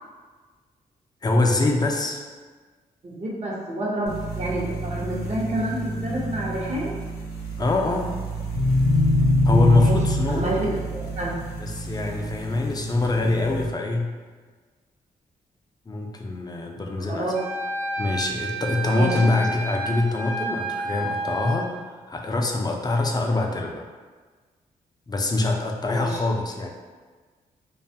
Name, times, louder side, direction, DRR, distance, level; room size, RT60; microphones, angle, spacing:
voice 1, 1.2-2.2 7.6-8.1 9.4-10.9 11.6-14.1 15.9-17.3 18.0-23.8 25.1-26.7, left 2 dB, 25° left, 2 dB, 0.4 m, -24 dB
voice 2, 3.0-6.9 9.7-10.0 10.3-11.4 17.1-17.3 18.9-19.2 25.9-26.2, right 1 dB, 45° right, -5 dB, 0.7 m, -29 dB
sound 1, 4.1-13.7, left 1 dB, 80° left, 0.5 m, -26 dB
Wind instrument woodwind instrument, 17.3-21.6, right 1 dB, 85° right, 0.8 m, -30 dB
2.4 x 2.3 x 2.7 m, 1.4 s
supercardioid pair, 55°, 16 cm